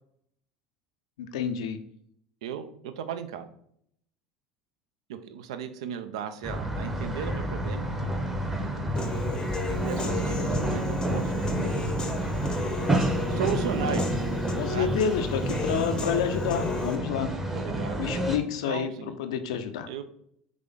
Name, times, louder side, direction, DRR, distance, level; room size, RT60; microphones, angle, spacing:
voice 1, 1.2-1.8 14.5-17.3 18.0-18.9 19.2-19.9, left 7 dB, 65° left, 8 dB, 0.5 m, -29 dB
voice 2, 2.4-3.5 5.1-7.9 9.7-11.5 13.3-14.2 14.7-14.9 17.5-18.0 18.7-19.2 19.9-20.0, right 8 dB, 65° right, 10 dB, 0.4 m, -35 dB
sound 1, 6.4-18.4, right 1 dB, 10° right, 0.8 m, -29 dB
Human voice / Piano, 9.0-17.0, left 3 dB, 25° left, 0.7 m, -34 dB
3.6 x 3.3 x 3.5 m, 0.69 s
figure-of-eight pair, 70°, 3 cm